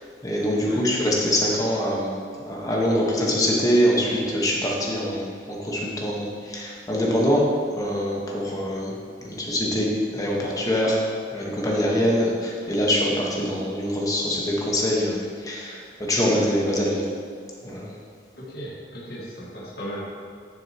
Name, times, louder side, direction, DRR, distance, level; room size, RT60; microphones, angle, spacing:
voice 1, 0.2-2.1 2.4-7.5 7.8-8.9 9.2-11.0 11.3-17.0 17.6-17.9, equal, 20° left, -3 dB, 1.2 m, -24 dB
voice 2, 18.4-20.2, equal, 60° left, -7 dB, 1.6 m, -36 dB
10.5 x 6.4 x 2.9 m, 2.1 s
head